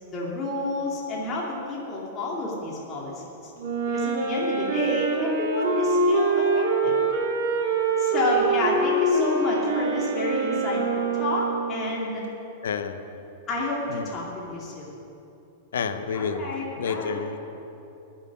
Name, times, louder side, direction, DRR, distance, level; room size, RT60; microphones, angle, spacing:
voice 1, 0.1-3.5 3.9-6.9 8.0-12.2 13.5-14.9 16.1-17.3, left 2 dB, 30° left, -4 dB, 2.6 m, -30 dB
Wind instrument woodwind instrument, 3.6-12.0, right 3 dB, 65° right, 2.2 m, -24 dB
voice 2, 12.6-13.0 13.9-14.1 15.7-16.5 16.8-17.4, left 6 dB, 75° left, 9 dB, 0.8 m, -29 dB
11.0 x 7.5 x 9.7 m, 3.0 s
hypercardioid pair, 100°, 0 cm